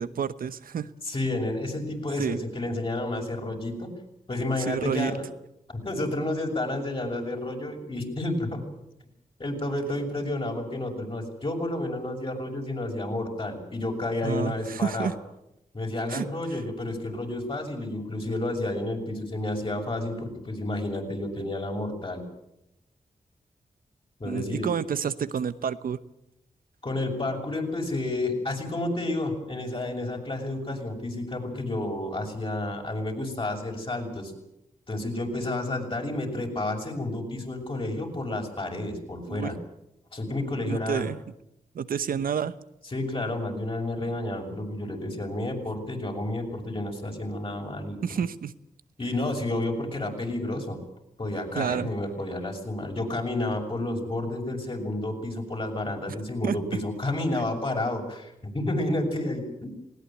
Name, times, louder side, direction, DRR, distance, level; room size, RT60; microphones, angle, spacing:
voice 1, 0.0-0.9 2.2-2.4 4.6-5.1 14.2-15.1 16.1-16.3 24.2-26.0 39.3-39.5 40.7-41.2 41.7-42.5 48.0-48.5 51.5-51.9 56.4-56.5, right 7 dB, 90° right, 14 dB, 1.0 m, -29 dB
voice 2, 1.0-3.9 4.3-5.2 5.7-8.6 9.4-15.1 15.7-22.2 24.2-24.7 26.8-34.3 34.9-39.5 40.1-41.1 42.8-48.2 49.0-50.8 51.2-59.7, left 2 dB, 40° left, 1 dB, 6.7 m, -30 dB
20.0 x 18.5 x 9.2 m, 0.85 s
cardioid pair, 65°, 14 cm